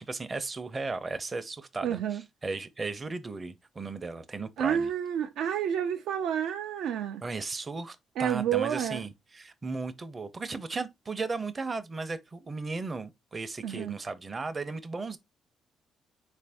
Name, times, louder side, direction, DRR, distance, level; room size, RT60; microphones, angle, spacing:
voice 1, 0.0-4.9 7.2-15.2, right 3 dB, 30° right, 0.5 m, -36 dB
voice 2, 1.8-2.2 4.6-7.2 8.2-9.0 13.6-14.0, right 9 dB, 85° right, 0.4 m, -29 dB
3.9 x 2.5 x 3.4 m
cardioid pair, 90°, 0 cm